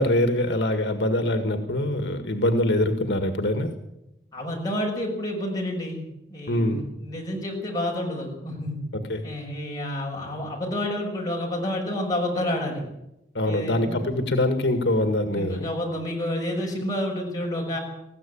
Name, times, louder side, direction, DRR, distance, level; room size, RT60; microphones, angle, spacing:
voice 1, 0.0-3.7 6.5-6.8 8.9-9.2 13.3-15.7, left 1 dB, 70° left, 7 dB, 1.9 m, -24 dB
voice 2, 4.3-6.0 6.3-8.8 9.2-12.9 13.5-14.1 15.3-17.8, left 1 dB, 20° left, -2 dB, 6.5 m, -29 dB
20.5 x 15.5 x 8.6 m, 0.89 s
head